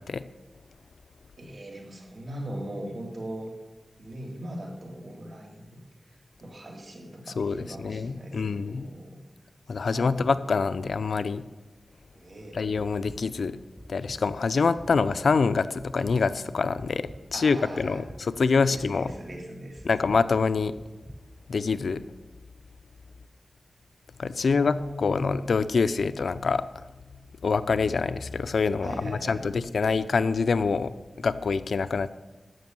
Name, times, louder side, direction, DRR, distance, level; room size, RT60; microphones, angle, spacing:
voice 1, 1.4-3.5 4.0-5.8 6.4-9.2 9.7-10.3 12.1-12.6 17.3-18.1 18.6-20.0 24.3-25.4 28.8-29.4, equal, 50° right, 1 dB, 2.8 m, -39 dB
voice 2, 7.4-8.9 9.7-11.4 12.5-13.6 13.9-19.1 19.9-20.7 21.5-22.0 24.2-26.6 27.4-30.9 31.2-32.1, left 4 dB, 85° left, 13 dB, 0.6 m, -25 dB
sound 1, 12.8-13.2 13.8-14.2 14.8-15.2 15.8-16.2 16.8-17.2 17.8-18.2 18.8-19.2 19.8-20.2 20.8-21.2, equal, 5° right, 1.1 m, -44 dB
14.5 x 6.1 x 9.5 m, 1.2 s
wide cardioid pair, 105°, 0 cm